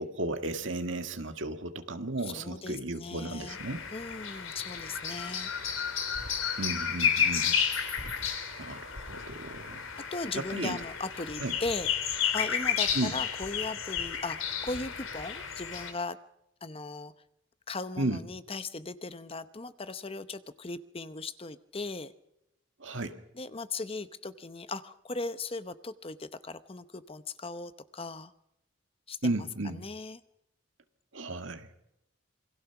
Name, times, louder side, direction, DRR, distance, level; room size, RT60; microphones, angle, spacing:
voice 1, 0.0-3.8 6.6-7.6 8.2-9.9 10.4-10.8 11.4-11.5 12.9-13.2 18.0-18.2 22.8-23.2 29.2-29.9 31.1-31.7, right 2 dB, 65° right, 7 dB, 2.0 m, -34 dB
voice 2, 2.4-3.6 3.9-5.5 10.1-16.2 16.6-17.1 17.7-22.1 23.3-28.3 29.1-29.3 29.7-30.2, left 3 dB, 25° left, 12 dB, 0.8 m, -38 dB
sound 1, 3.5-15.9, left 7 dB, 75° left, 3.5 m, -32 dB
28.0 x 22.5 x 5.9 m, 0.82 s
head